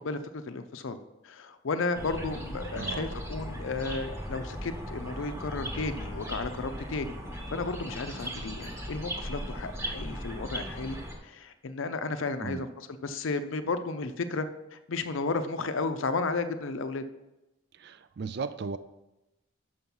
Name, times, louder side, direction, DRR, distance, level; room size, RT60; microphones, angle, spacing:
voice 1, 0.0-1.0 1.2-11.0 11.2-17.0, left 3 dB, 70° left, 10 dB, 0.5 m, -33 dB
sound 1, 1.9-11.1, equal, 10° right, 1.0 m, -37 dB
voice 2, 2.7-3.1 12.4-12.7 17.8-18.8, right 4 dB, 50° right, 13 dB, 0.4 m, -36 dB
6.4 x 5.9 x 5.5 m, 0.98 s
head